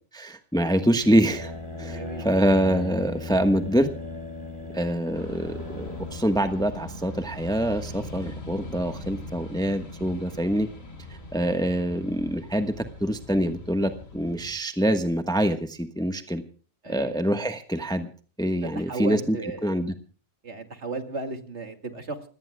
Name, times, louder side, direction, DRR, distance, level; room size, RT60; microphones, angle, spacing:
voice 1, 0.1-1.5 1.8-3.9 4.7-10.7 11.3-16.4 16.9-18.1 18.4-19.4 19.6-19.9, equal, 5° left, 8 dB, 1.1 m, -25 dB
sound 1, 0.9-6.3, left 2 dB, 20° right, 5.3 m, -37 dB
voice 2, 1.9-2.3 16.8-17.2 18.7-19.7 20.4-22.3, right 3 dB, 60° right, 6 dB, 2.5 m, -35 dB
sound 2, 5.1-14.5, left 1 dB, 85° left, 3.6 m, -41 dB
29.0 x 18.0 x 2.3 m, 0.41 s
omnidirectional pair, 1.3 m